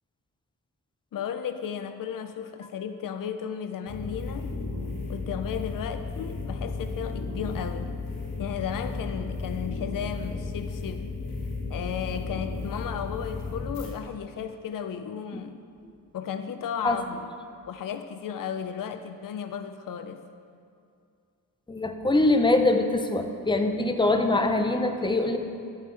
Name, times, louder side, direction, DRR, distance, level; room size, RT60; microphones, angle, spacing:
voice 1, 1.1-4.5 5.1-8.0 8.4-11.1 11.7-15.6 16.1-17.3 17.7-20.2, left 8 dB, 65° left, 8 dB, 0.5 m, -34 dB
sound 1, 3.9-13.9, left 3 dB, 85° left, 1.8 m, -34 dB
voice 2, 21.7-25.4, left 2 dB, 15° left, 5 dB, 0.5 m, -23 dB
11.5 x 8.8 x 3.2 m, 2.4 s
wide cardioid pair, 130°, 36 cm